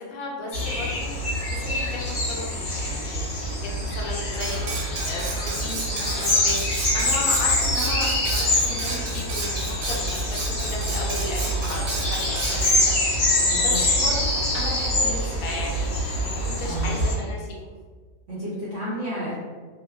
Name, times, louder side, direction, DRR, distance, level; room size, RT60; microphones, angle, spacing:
voice 1, 0.0-6.6 6.9-17.6, left 2 dB, 70° left, -2 dB, 1.0 m, -35 dB
sound 1, 0.5-17.1, left 1 dB, 55° left, 0.6 m, -25 dB
Cutlery silverware, 4.4-12.8, right 3 dB, 90° right, 1.2 m, -33 dB
voice 2, 13.5-13.8 16.6-17.0 18.3-19.3, equal, 55° right, -10 dB, 0.8 m, -31 dB
2.6 x 2.2 x 2.2 m, 1.5 s
omnidirectional pair, 1.6 m